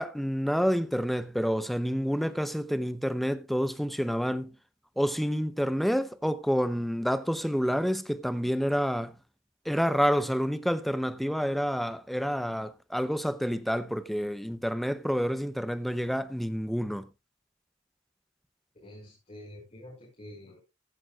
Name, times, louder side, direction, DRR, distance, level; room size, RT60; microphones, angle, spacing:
voice 1, 0.0-4.5 5.0-9.2 9.7-17.1, equal, ahead, 0.6 m, -28 dB
voice 2, 18.8-20.6, left 1 dB, 35° left, 5.3 m, -47 dB
15.5 x 11.0 x 2.4 m
head